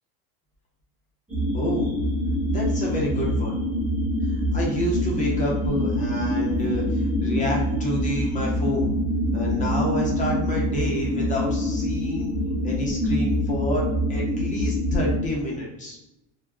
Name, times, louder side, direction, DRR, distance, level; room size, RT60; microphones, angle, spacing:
sound 1, 1.3-15.2, equal, 5° right, 0.8 m, -25 dB
voice 1, 1.5-2.0 2.4-3.5 4.5-8.9 9.3-12.3 12.6-16.0, left 1 dB, 25° left, -3 dB, 0.6 m, -29 dB
2.4 x 2.0 x 3.5 m, 0.91 s
cardioid pair, 145°, 32 cm